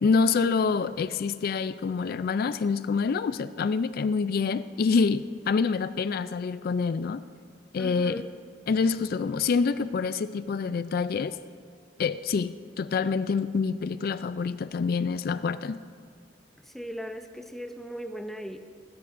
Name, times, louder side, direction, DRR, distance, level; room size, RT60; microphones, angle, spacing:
voice 1, 0.0-7.2 7.7-8.3 8.7-11.4 12.0-15.8, left 5 dB, 55° left, 0.3 m, -26 dB
voice 2, 7.8-8.3 16.6-18.6, equal, ahead, 0.6 m, -38 dB
26.0 x 13.0 x 2.6 m
head